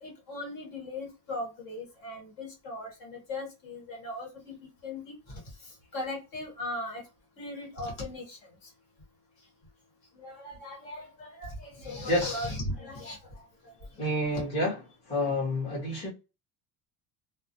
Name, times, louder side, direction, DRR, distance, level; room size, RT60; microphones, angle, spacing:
voice 1, 0.0-7.1 7.4-8.7 10.1-13.7 14.3-14.4, left 1 dB, 50° left, 1.1 m, -39 dB
voice 2, 12.1-12.4 14.0-14.8 15.1-16.1, left 1 dB, 15° left, 0.8 m, -28 dB
2.3 x 2.0 x 2.6 m
cardioid pair, 160°, 43 cm